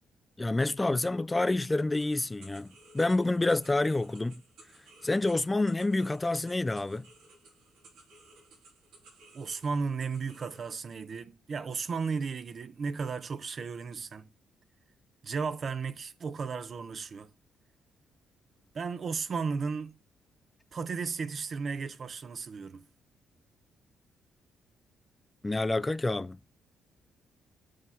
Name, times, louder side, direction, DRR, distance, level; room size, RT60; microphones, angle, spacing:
voice 1, 0.4-4.4 5.0-7.1 25.4-26.4, left 2 dB, 15° left, 0.3 m, -28 dB
sound 1, 2.0-10.7, right 2 dB, 90° right, 2.9 m, -57 dB
voice 2, 9.3-14.3 15.2-17.3 18.7-20.0 20.7-22.9, right 5 dB, 45° right, 0.7 m, -34 dB
6.6 x 5.6 x 3.5 m
cardioid pair, 90°, 0 cm